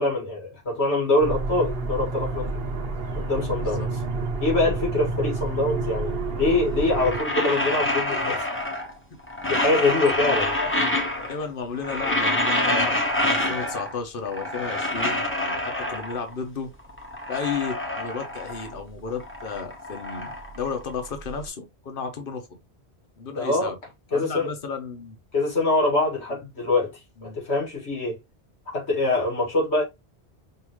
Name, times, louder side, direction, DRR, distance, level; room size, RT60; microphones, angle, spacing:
voice 1, 0.0-2.5 3.1-3.8 4.4-8.5 9.5-10.5 23.4-23.7 24.1-24.5 25.3-26.9 27.2-28.2 28.7-29.8, left 2 dB, 85° left, 2.2 m, -24 dB
sound 1, 1.2-7.2, right 3 dB, 65° right, 1.1 m, -29 dB
sound 2, 6.8-9.0 9.3-11.5 11.7-14.0 14.3-16.3 16.8-18.8 19.1-21.3, left 1 dB, 10° left, 1.0 m, -27 dB
voice 2, 11.3-16.7 17.3-22.5 23.2-23.8 24.1-25.2 27.2-27.4, left 5 dB, 55° left, 1.2 m, -33 dB
5.6 x 2.8 x 3.1 m
omnidirectional pair, 1.1 m